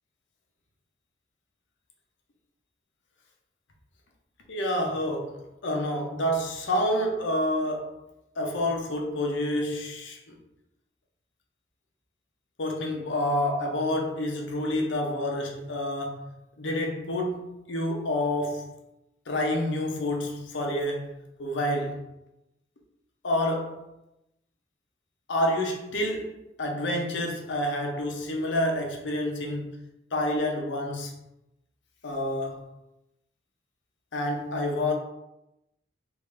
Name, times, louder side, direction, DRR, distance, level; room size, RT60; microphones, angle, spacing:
voice 1, 4.5-8.0 8.4-10.4 12.6-18.7 19.3-22.1 23.2-23.9 25.3-29.8 30.1-31.2 32.0-32.7 34.1-34.9, left 1 dB, 85° left, 0.7 m, -28 dB
3.5 x 2.5 x 3.2 m
head